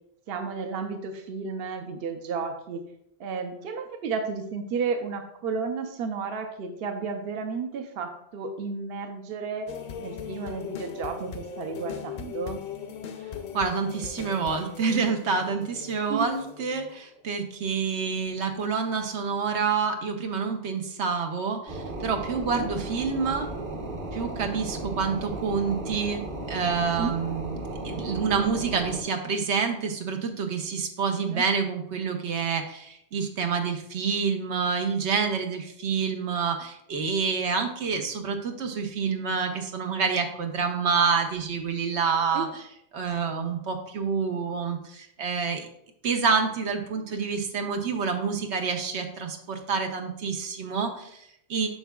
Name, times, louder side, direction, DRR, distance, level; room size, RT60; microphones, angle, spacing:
voice 1, 0.3-2.8 3.2-9.7 10.0-12.6 16.1-16.3 22.5-22.7 27.0-27.1 31.3-31.4 42.3-42.4, right 5 dB, 65° right, 6 dB, 0.9 m, -32 dB
sound 1, 9.7-17.6 18.1-18.2, left 7 dB, 55° left, 0.6 m, -39 dB
voice 2, 13.5-23.5 24.1-26.2 26.5-42.6 42.9-45.7 46.0-51.7, right 5 dB, 85° right, 4 dB, 1.1 m, -28 dB
sound 2, 21.7-29.0, right 2 dB, 50° right, 1.1 m, -35 dB
8.5 x 5.9 x 2.3 m, 0.74 s
omnidirectional pair, 1.1 m